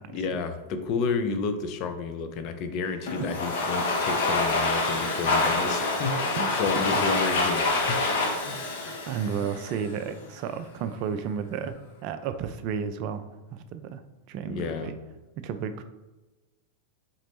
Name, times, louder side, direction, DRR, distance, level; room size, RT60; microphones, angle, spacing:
voice 1, 0.1-8.6 14.5-14.9, left 4 dB, 40° left, 7 dB, 0.5 m, -31 dB
Domestic sounds home sounds, 3.1-10.0, left 3 dB, 55° left, 0.9 m, -26 dB
voice 2, 8.5-13.2 13.5-14.0 14.3-14.9 15.4-15.8, right 7 dB, 45° right, 10 dB, 0.3 m, -33 dB
4.0 x 3.9 x 3.2 m, 1.1 s
figure-of-eight pair, 90°, 0 cm